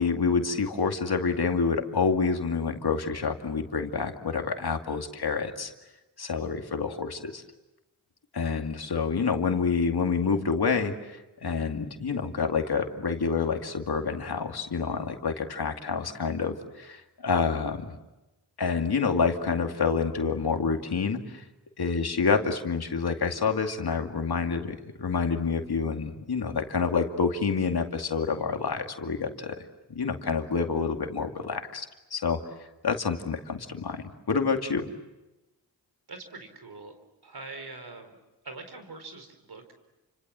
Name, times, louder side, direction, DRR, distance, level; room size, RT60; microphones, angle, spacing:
voice 1, 0.0-5.7 6.2-7.4 8.3-17.9 18.6-21.4 21.8-29.6 29.9-32.4 32.8-34.9, left 5 dB, 65° left, 4 dB, 2.4 m, -28 dB
voice 2, 36.1-36.9 37.2-38.1 38.4-39.7, right 3 dB, 65° right, 7 dB, 4.6 m, -43 dB
29.5 x 26.0 x 7.6 m, 1.0 s
cardioid pair, 50°, 40 cm